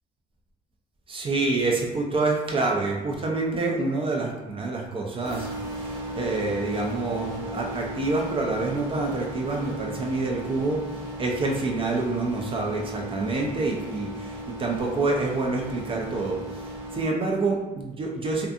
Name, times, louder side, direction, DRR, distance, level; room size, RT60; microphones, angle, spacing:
voice 1, 1.1-5.5 5.7-10.8 11.2-18.5, right 3 dB, 30° right, 0 dB, 0.4 m, -27 dB
sound 1, 5.2-17.0, equal, 10° right, 0.9 m, -36 dB
2.5 x 2.3 x 2.5 m, 1.1 s
cardioid pair, 110°, 17 cm